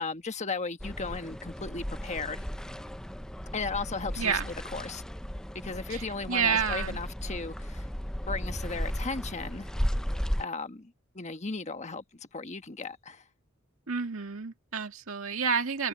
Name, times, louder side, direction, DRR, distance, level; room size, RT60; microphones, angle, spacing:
voice 1, 0.0-2.5 3.5-5.0 5.6-7.9 8.3-9.7 10.4-13.2, left 4 dB, 35° left, 1.3 m, -36 dB
sound 1, 0.8-10.4, equal, 5° left, 0.5 m, -35 dB
voice 2, 4.2-4.5 5.9-7.0 13.9-15.9, right 6 dB, 75° right, 2.0 m, -29 dB
open air
head